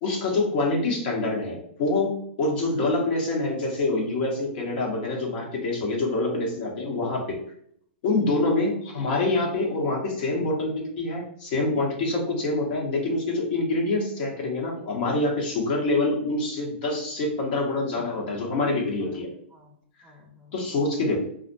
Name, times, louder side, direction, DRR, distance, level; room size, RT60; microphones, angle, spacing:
voice 1, 0.0-7.4 8.0-19.3 20.5-21.2, left 2 dB, 50° left, -1 dB, 0.8 m, -26 dB
voice 2, 17.7-20.7, right 1 dB, ahead, -2 dB, 0.7 m, -52 dB
2.4 x 2.1 x 2.5 m, 0.67 s
hypercardioid pair, 135°, 6 cm